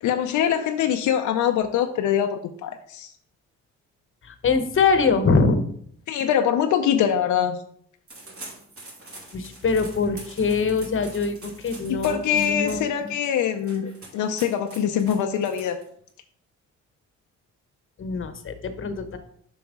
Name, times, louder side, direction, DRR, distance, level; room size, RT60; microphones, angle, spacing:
voice 1, 0.0-3.1 6.1-7.6 12.0-15.8, left 9 dB, 80° left, 5 dB, 0.6 m, -23 dB
voice 2, 4.2-5.7 9.3-13.1 18.0-19.2, left 4 dB, 45° left, 9 dB, 1.0 m, -23 dB
sound 1, 8.1-16.1, right 2 dB, 45° right, 3.0 m, -44 dB
7.2 x 5.8 x 3.7 m, 0.63 s
cardioid pair, 90°, 30 cm